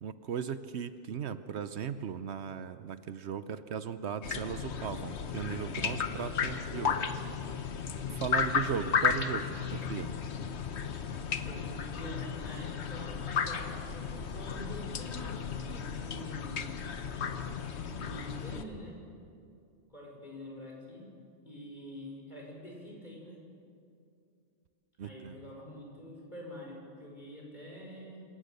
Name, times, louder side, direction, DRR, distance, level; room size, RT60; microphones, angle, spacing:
voice 1, 0.0-7.1 8.1-10.1 25.0-25.4, right 7 dB, 70° right, 12 dB, 1.0 m, -37 dB
sound 1, 4.2-18.6, left 6 dB, 70° left, 1.2 m, -34 dB
voice 2, 11.4-16.6 18.0-19.0 19.9-21.1 21.4-23.4 25.0-28.2, equal, 40° left, -2 dB, 5.2 m, -46 dB
26.5 x 17.5 x 6.7 m, 2.4 s
omnidirectional pair, 1.2 m